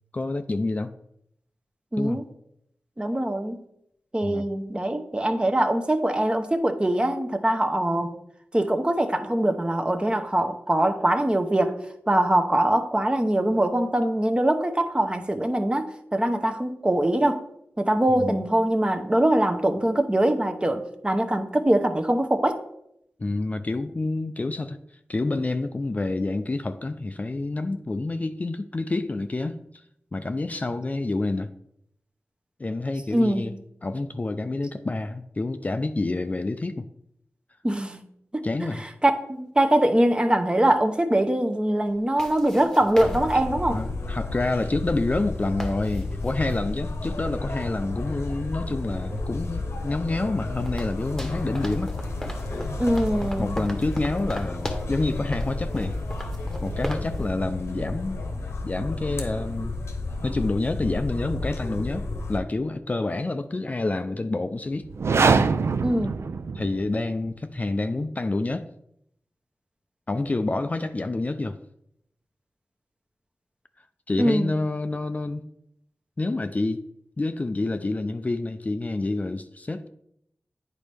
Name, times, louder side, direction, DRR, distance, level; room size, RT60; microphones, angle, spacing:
voice 1, 0.1-0.9 2.0-2.2 4.2-4.5 18.1-18.4 23.2-24.8 25.1-29.6 30.1-31.5 32.6-36.9 38.4-38.8 43.7-51.9 53.4-56.0 56.6-58.2 58.6-59.7 60.2-64.9 66.5-68.7 70.1-71.6 74.1-75.5 76.2-76.9 77.2-79.9, left 2 dB, 35° left, 9 dB, 0.4 m, -28 dB
voice 2, 1.9-2.2 3.0-3.6 4.1-8.2 8.5-11.8 12.1-17.4 17.8-22.6 33.1-33.6 37.6-38.0 38.3-38.7 39.0-43.8 52.8-53.6 65.8-66.1 74.2-74.5, right 1 dB, 20° right, 6 dB, 0.7 m, -23 dB
sound 1, 39.0-39.1 41.9-43.8 44.6-44.7 45.0-45.1 45.3-46.6 49.1-49.2 49.8-57.3, equal, 10° left, 1.0 m, -38 dB
sound 2, 43.0-62.4, left 2 dB, 75° left, 0.9 m, -32 dB
sound 3, 64.8-67.0, right 4 dB, 70° right, 0.4 m, -23 dB
8.9 x 4.1 x 3.4 m, 0.75 s
cardioid pair, 55°, 5 cm